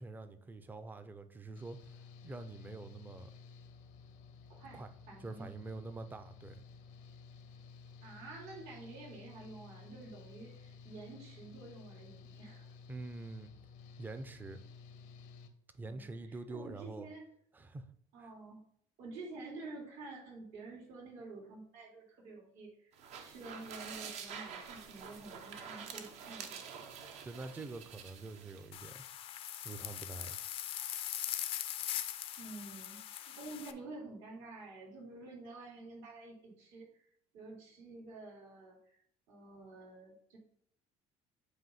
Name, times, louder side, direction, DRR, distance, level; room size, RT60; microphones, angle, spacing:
voice 1, 0.0-2.0 2.2-3.3 4.7-4.9 5.2-6.6 12.9-13.5 14.0-14.6 15.7-17.1 17.5-17.9 18.2-18.3 27.2-29.0 29.6-30.4, right 3 dB, 15° right, 0.5 m, -46 dB
Engine / Mechanical fan, 1.5-15.5, left 5 dB, 80° left, 0.8 m, -54 dB
voice 2, 4.5-5.5 8.0-12.7 15.8-17.2 18.1-18.6 19.0-26.6 32.4-36.9 37.3-39.0 39.3-40.4, right 3 dB, 80° right, 2.9 m, -49 dB
sound 1, 22.9-28.7, right 6 dB, 60° right, 0.8 m, -47 dB
sound 2, 28.7-33.7, left 11 dB, 45° left, 0.5 m, -41 dB
7.9 x 2.7 x 5.7 m
cardioid pair, 155°, 13 cm